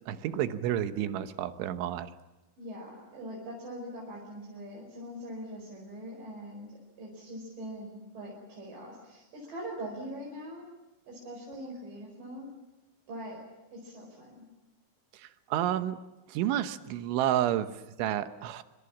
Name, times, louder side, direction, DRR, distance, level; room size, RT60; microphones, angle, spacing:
voice 1, 0.1-2.1 15.1-16.0 16.3-18.6, right 11 dB, 80° right, 10 dB, 3.5 m, -30 dB
voice 2, 2.6-6.7 7.0-10.7 11.1-12.5 13.1-13.4 13.7-14.4, equal, 45° right, -2 dB, 6.4 m, -42 dB
26.5 x 26.0 x 7.3 m, 1.0 s
omnidirectional pair, 5.6 m